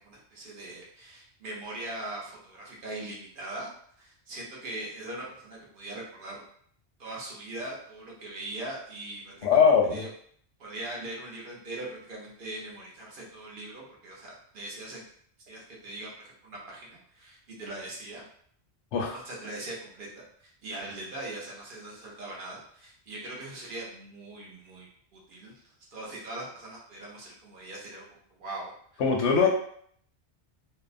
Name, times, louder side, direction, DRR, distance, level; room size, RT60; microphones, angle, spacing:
voice 1, 0.0-3.7 4.0-6.4 7.0-10.1 10.6-15.1 15.5-18.2 19.1-29.0 29.3-29.5, right 2 dB, 50° right, -3 dB, 0.8 m, -41 dB
voice 2, 9.4-10.0 18.9-19.2 29.0-29.5, left 6 dB, 80° left, 1 dB, 0.9 m, -21 dB
2.7 x 2.0 x 2.5 m, 0.62 s
omnidirectional pair, 1.2 m